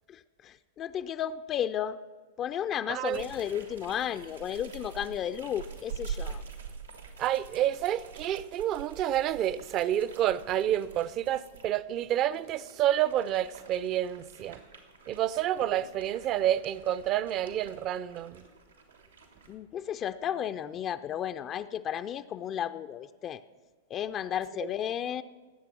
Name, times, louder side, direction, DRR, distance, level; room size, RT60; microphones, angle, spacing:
voice 1, 0.1-2.0 2.4-6.4 19.5-23.4 23.9-25.2, left 9 dB, 30° left, 0.4 m, -33 dB
voice 2, 2.9-3.2 7.2-14.6 15.1-18.4, right 11 dB, 35° right, 0.5 m, -29 dB
sound 1, 3.0-11.7 12.2-19.5, right 6 dB, 85° right, 2.4 m, -45 dB
19.0 x 8.1 x 6.0 m
figure-of-eight pair, 100°, 0 cm